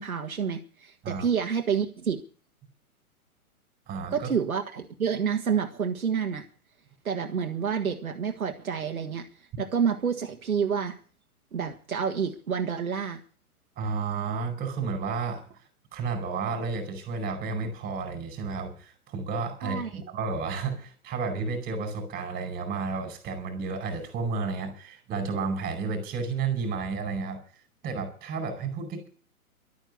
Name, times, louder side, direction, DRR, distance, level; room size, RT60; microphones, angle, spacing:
voice 1, 0.0-2.2 4.1-6.4 7.0-9.3 9.6-11.0 11.5-13.2 19.6-19.9, right 7 dB, 70° right, 4 dB, 1.8 m, -28 dB
voice 2, 3.9-4.3 13.8-15.5 15.9-27.4 27.8-29.1, right 4 dB, 20° right, 7 dB, 4.8 m, -32 dB
12.5 x 9.3 x 9.5 m, 0.41 s
figure-of-eight pair, 120°, 44 cm